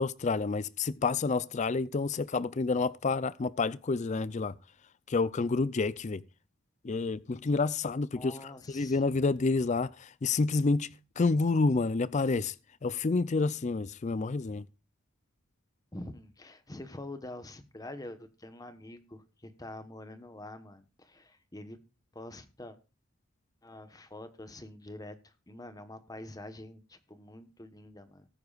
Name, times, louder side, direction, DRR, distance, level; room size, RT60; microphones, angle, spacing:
voice 1, 0.0-4.5 5.1-6.2 6.8-10.9 11.2-12.6 12.8-14.7, left 3 dB, 35° left, 0.4 m, -29 dB
voice 2, 8.1-9.0 15.9-21.8 22.1-22.8 23.6-28.3, left 1 dB, 20° left, 1.1 m, -46 dB
19.0 x 9.4 x 2.4 m
head